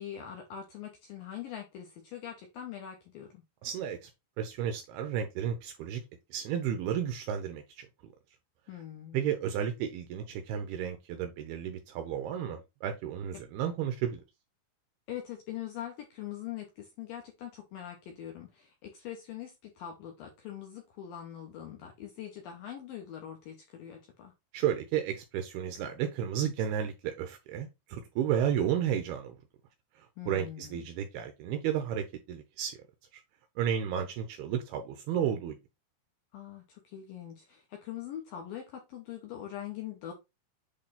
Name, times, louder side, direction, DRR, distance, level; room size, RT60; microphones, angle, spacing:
voice 1, 0.0-3.4 8.7-9.3 13.3-13.4 15.1-24.3 30.2-30.9 36.3-40.1, left 10 dB, 85° left, 2.0 m, -43 dB
voice 2, 3.6-4.1 4.4-6.0 6.3-7.9 9.1-14.2 24.5-29.4 30.0-32.8 33.6-35.6, right 9 dB, 85° right, 2.2 m, -32 dB
8.3 x 3.2 x 4.1 m
omnidirectional pair, 5.6 m